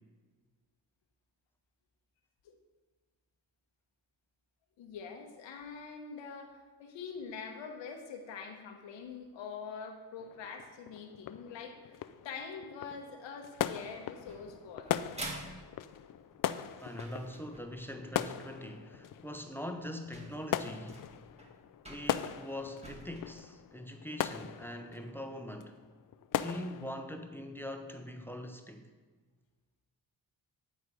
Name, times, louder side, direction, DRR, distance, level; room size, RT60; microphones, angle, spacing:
voice 1, 4.8-12.0 12.2-15.1, left 5 dB, 80° left, 4 dB, 1.0 m, -44 dB
sound 1, 10.2-26.9, left 11 dB, 50° left, 0.4 m, -40 dB
sound 2, 14.3-17.9 19.2-19.3 19.8-19.9 20.1-23.2, right 1 dB, 15° right, 1.8 m, -47 dB
voice 2, 16.8-21.0 21.9-25.8 26.3-28.9, left 1 dB, 5° left, 5 dB, 0.7 m, -42 dB
9.4 x 4.1 x 4.8 m, 1.4 s
cardioid pair, 60°, 44 cm